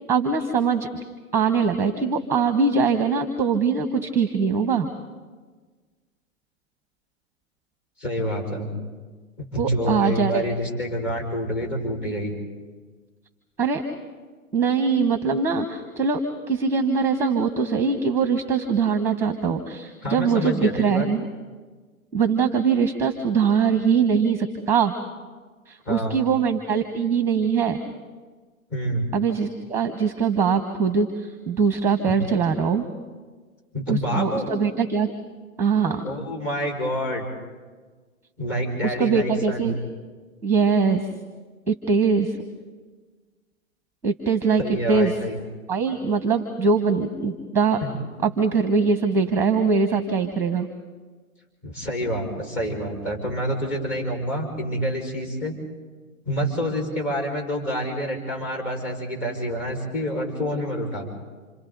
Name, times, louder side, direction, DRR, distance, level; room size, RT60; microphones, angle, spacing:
voice 1, 0.1-0.9 1.3-4.9 9.6-10.4 13.6-13.8 14.5-16.2 16.5-21.2 22.1-24.9 25.7-27.8 29.1-32.9 33.9-35.1 35.6-36.0 38.8-39.7 40.4-41.1 41.7-42.4 44.0-44.6 44.9-45.1 45.7-47.8 48.2-50.7, right 5 dB, 5° right, 8 dB, 1.1 m, -22 dB
voice 2, 8.0-8.7 9.4-12.3 20.0-21.1 25.9-26.2 28.7-29.1 32.0-32.1 33.7-34.5 36.0-37.3 38.4-39.8 44.6-45.4 47.8-47.9 51.6-55.6 56.3-61.1, equal, 30° left, 1 dB, 5.5 m, -27 dB
29.0 x 27.0 x 4.0 m, 1.4 s
hypercardioid pair, 125°, 42 cm